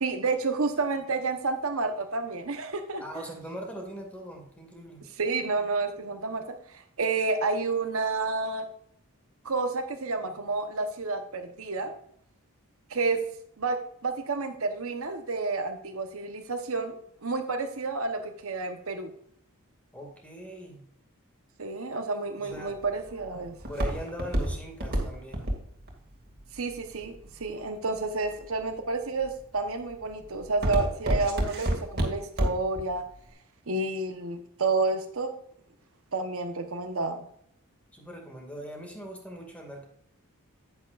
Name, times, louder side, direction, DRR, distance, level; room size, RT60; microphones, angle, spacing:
voice 1, 0.0-3.0 5.2-8.7 9.4-11.9 12.9-13.2 13.6-16.9 17.2-19.1 21.6-23.6 26.5-33.0 33.7-35.3 36.1-37.3, right 3 dB, 65° right, 6 dB, 1.0 m, -30 dB
voice 2, 3.0-5.1 19.9-20.8 22.4-22.8 23.7-25.5 37.9-39.9, equal, 5° left, 1 dB, 2.1 m, -40 dB
Walk footsteps, 22.5-27.6 28.2-28.7 29.2-29.6 29.9-32.8 33.1-33.2, right 1 dB, 45° right, 2.3 m, -28 dB
10.5 x 9.3 x 2.5 m, 0.69 s
head